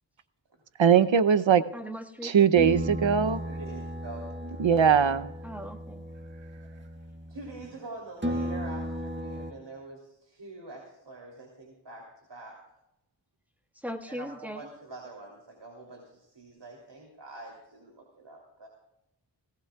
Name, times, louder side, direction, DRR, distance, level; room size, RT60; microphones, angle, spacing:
voice 1, 0.8-1.6 2.2-3.4 4.6-5.3, right 7 dB, 85° right, 13 dB, 0.8 m, -21 dB
voice 2, 1.7-2.5 5.4-6.0 13.8-14.6, equal, 5° right, 4 dB, 1.6 m, -39 dB
sound 1, 2.5-7.8 8.2-9.5, equal, 25° right, 1.4 m, -35 dB
voice 3, 3.5-4.3 7.3-12.6 14.1-18.7, right 2 dB, 65° right, 0 dB, 3.1 m, -45 dB
19.0 x 18.0 x 2.3 m, 0.86 s
wide cardioid pair, 55°, 45 cm